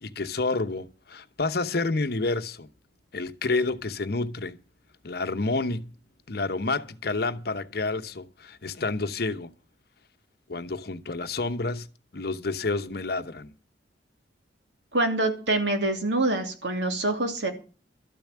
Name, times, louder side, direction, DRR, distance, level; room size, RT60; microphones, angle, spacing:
voice 1, 0.0-2.7 3.1-4.6 5.0-5.9 6.3-9.5 10.5-11.9 12.1-13.5, left 3 dB, 60° left, 0.9 m, -29 dB
voice 2, 14.9-17.5, right 2 dB, 90° right, 2.6 m, -25 dB
13.0 x 7.1 x 8.5 m
head